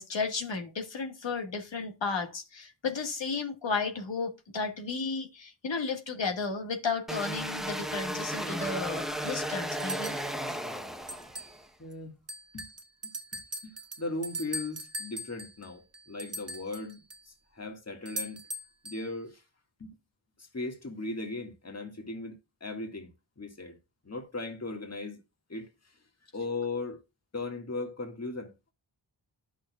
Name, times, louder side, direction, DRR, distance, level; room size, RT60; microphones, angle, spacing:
voice 1, 0.0-10.1, left 4 dB, 80° left, 1.7 m, -33 dB
sound 1, 7.1-11.6, equal, ahead, 0.9 m, -35 dB
sound 2, 9.8-10.3 11.1-11.6 11.9-12.0 12.3-17.2 18.0-19.1, right 1 dB, 35° right, 1.2 m, -40 dB
voice 2, 11.8-12.2 12.5-12.7 13.0-13.1 13.6-17.0 17.3-18.4 18.8-19.4 19.8-19.9 20.4-23.1 23.4-23.8 24.0-25.2 25.5-26.0 26.3-27.0 27.3-28.7, left 2 dB, 35° left, 1.9 m, -38 dB
11.5 x 6.4 x 2.4 m
wide cardioid pair, 80°, 44 cm